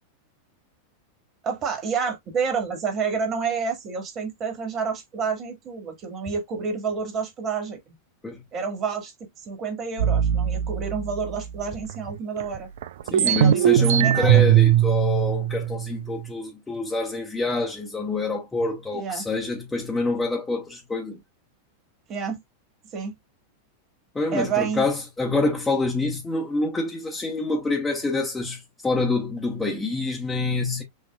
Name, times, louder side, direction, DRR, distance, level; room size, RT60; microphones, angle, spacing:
voice 1, 1.4-7.9 8.5-9.1 9.4-12.7 13.2-14.4 18.9-19.2 22.1-22.4 22.9-23.1 24.3-24.9, right 5 dB, 30° right, 2.0 m, -29 dB
sound 1, 10.0-11.9 12.4-12.5 12.8-16.3, right 11 dB, 55° right, 0.4 m, -20 dB
voice 2, 13.1-21.2 24.1-30.8, left 3 dB, 10° left, 1.2 m, -26 dB
6.4 x 2.8 x 2.3 m
figure-of-eight pair, 90°, 0 cm